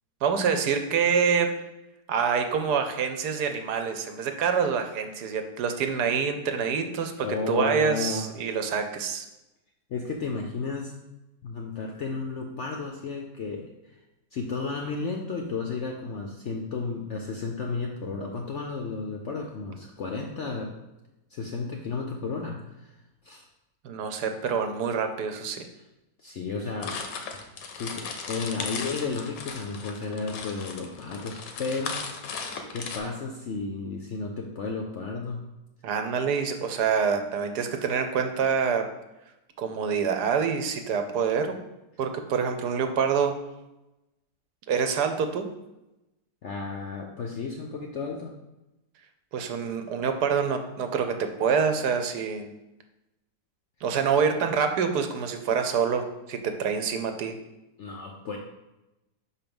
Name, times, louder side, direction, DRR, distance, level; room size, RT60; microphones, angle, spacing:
voice 1, 0.2-1.5 2.1-9.3 23.8-25.7 35.8-38.8 39.6-41.6 42.0-43.3 44.7-45.5 49.3-52.5 53.8-57.3, right 6 dB, 70° right, 6 dB, 1.2 m, -26 dB
voice 2, 7.2-8.3 9.9-10.9 11.4-14.0 14.3-20.7 21.3-22.9 23.2-23.4 26.2-26.9 27.7-32.0 32.7-35.4 46.4-48.3 57.8-58.4, left 4 dB, 65° left, 2 dB, 0.7 m, -33 dB
sound 1, 26.8-33.0, left 5 dB, 90° left, 1.4 m, -36 dB
5.8 x 4.6 x 5.3 m, 0.96 s
omnidirectional pair, 1.9 m